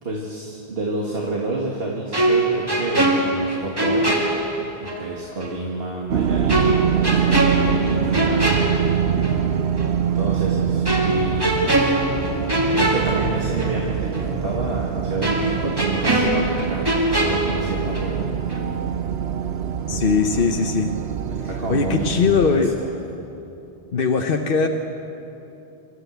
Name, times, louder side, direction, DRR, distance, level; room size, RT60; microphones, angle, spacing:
voice 1, 0.0-4.2 4.8-8.7 9.6-11.6 12.7-16.9 17.2-18.3 19.9-20.4 21.3-22.1 22.5-22.9, right 2 dB, 65° right, -2 dB, 2.2 m, -29 dB
sound 1, 2.1-5.1 5.4-5.5 6.5-9.5 9.8-10.0 10.9-13.9 14.1-14.3 15.2-18.2 18.5-18.7, right 1 dB, 20° right, 2.3 m, -23 dB
sound 2, 6.1-22.6, right 8 dB, 85° right, 1.0 m, -24 dB
voice 2, 19.9-20.9 21.7-22.7 23.9-24.7, left 5 dB, 60° left, 4 dB, 1.0 m, -20 dB
26.0 x 13.5 x 8.0 m, 3.0 s
omnidirectional pair, 1.1 m